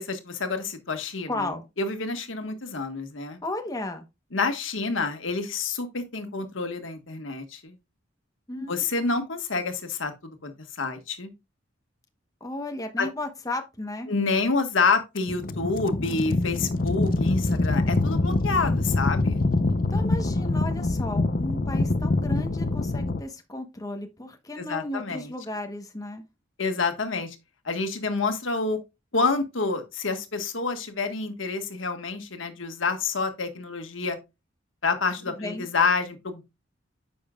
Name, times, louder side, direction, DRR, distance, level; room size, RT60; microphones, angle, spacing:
voice 1, 0.0-1.5 1.8-3.4 4.3-7.7 8.7-10.5 10.8-11.3 13.0-13.1 14.1-19.4 24.6-25.3 26.6-27.3 27.6-28.8 29.1-34.2 34.8-36.4, left 4 dB, 85° left, 1.5 m, -28 dB
voice 2, 1.3-1.6 3.4-4.1 8.5-8.9 12.4-14.1 19.9-26.2 35.3-35.7, left 2 dB, 20° left, 1.0 m, -34 dB
sound 1, 15.2-23.2, left 2 dB, 45° left, 0.6 m, -25 dB
10.0 x 6.9 x 2.3 m
head